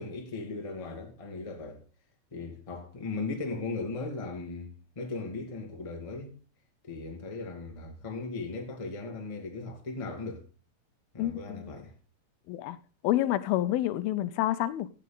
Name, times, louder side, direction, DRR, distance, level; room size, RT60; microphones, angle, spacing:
voice 1, 0.0-1.8 2.3-6.3 6.9-10.4 11.1-11.9, left 3 dB, 15° left, 1.0 m, -37 dB
voice 2, 11.2-11.6 12.5-12.8 13.0-14.9, left 14 dB, 80° left, 2.5 m, -28 dB
14.5 x 9.0 x 3.9 m
omnidirectional pair, 4.4 m